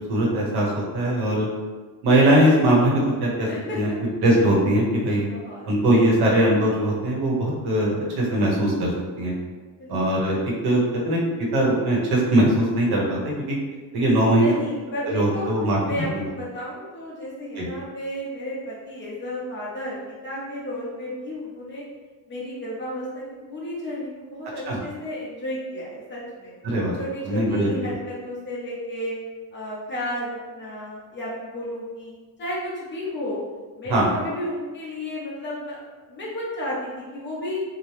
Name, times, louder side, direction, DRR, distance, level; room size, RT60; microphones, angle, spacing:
voice 1, 0.1-1.5 2.0-2.9 3.2-3.5 3.7-3.9 4.2-5.3 5.7-8.9 9.2-9.3 9.9-13.6 13.9-14.5 15.0-16.2 17.6-17.7 24.7-24.8 26.6-27.0 27.3-27.9 33.9-34.1, right 1 dB, 65° right, -3 dB, 0.9 m, -21 dB
voice 2, 3.5-4.0 5.3-5.7 9.8-10.0 14.3-15.5 15.8-21.8 22.3-26.5 27.0-29.1 29.5-32.1 32.4-33.4 33.8-35.8 36.1-37.6, left 1 dB, 25° left, -6 dB, 0.7 m, -32 dB
2.9 x 2.0 x 3.1 m, 1.4 s
cardioid pair, 170°, 41 cm